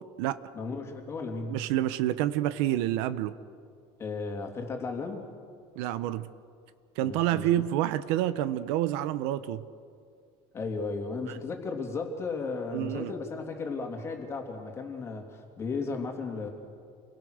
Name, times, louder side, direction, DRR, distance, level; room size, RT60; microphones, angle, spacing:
voice 1, 0.5-1.6 4.0-5.3 7.0-7.4 10.5-16.5, left 4 dB, 20° left, 2 dB, 3.0 m, -35 dB
voice 2, 1.5-3.3 5.8-6.3 7.0-9.6 12.7-13.1, right 13 dB, 80° right, 13 dB, 1.0 m, -28 dB
29.0 x 23.0 x 6.6 m, 2.3 s
cardioid pair, 175°, 13 cm